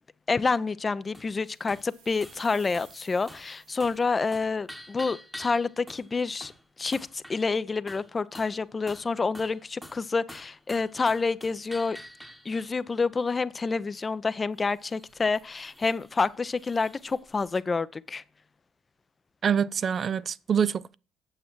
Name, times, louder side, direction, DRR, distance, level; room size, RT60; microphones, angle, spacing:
voice 1, 0.3-6.5 6.8-12.0 12.4-18.2, left 4 dB, 30° left, 0.6 m, -28 dB
sound 1, 1.1-1.3 1.7-1.9 2.2-2.4 2.7-3.0 3.3-3.5 3.8-4.1 4.3-6.1 6.4-6.6 6.9-7.5 7.9-8.6 8.9-13.0 14.6-17.6, equal, 5° right, 1.1 m, -47 dB
sound 2, 1.4-4.4, right 7 dB, 75° right, 1.9 m, -56 dB
voice 2, 19.4-20.9, right 7 dB, 45° right, 0.4 m, -25 dB
8.8 x 7.8 x 4.5 m
hypercardioid pair, 55°, 0 cm